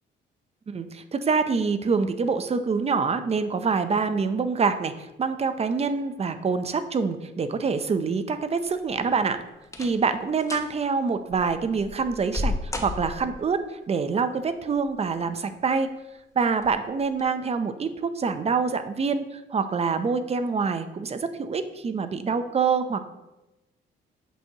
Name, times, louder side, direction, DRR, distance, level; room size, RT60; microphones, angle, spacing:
voice 1, 0.7-9.4 9.8-15.9 16.4-23.0, right 5 dB, 30° right, 10 dB, 0.6 m, -26 dB
sound 1, 8.7-9.1 9.6-10.1 10.4-10.7 11.3-13.5 14.7-15.3 15.7-15.8 16.6-16.8 17.1-17.2, left 2 dB, 15° left, 0.9 m, -33 dB
8.2 x 5.9 x 2.9 m, 0.98 s
cardioid pair, 90°, 20 cm